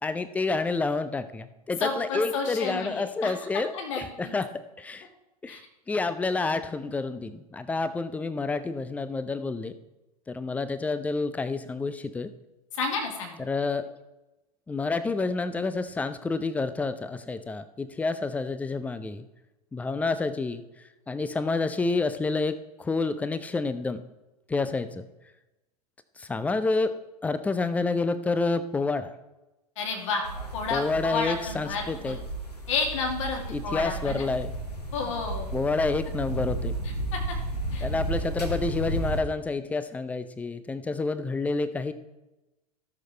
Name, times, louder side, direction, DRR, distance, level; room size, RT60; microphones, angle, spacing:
voice 1, 0.0-5.1 5.4-5.6 5.9-9.7 10.3-12.3 13.4-14.0 14.7-19.3 19.7-20.6 21.1-24.0 24.5-25.1 26.2-27.0 27.2-29.1 30.7-32.2 33.5-34.5 35.5-36.7 37.8-41.9, left 3 dB, 5° left, 12 dB, 0.5 m, -29 dB
voice 2, 1.8-3.3 3.7-4.3 5.5-5.6 12.7-13.4 29.8-30.2 30.5-32.2 32.7-34.3 34.9-35.5 37.1-37.2 37.7-37.9, left 4 dB, 50° left, 1 dB, 2.2 m, -31 dB
sound 1, 30.2-39.2, right 2 dB, 80° left, 1.6 m, -33 dB
16.5 x 6.5 x 3.3 m, 1.0 s
figure-of-eight pair, 95°, 20 cm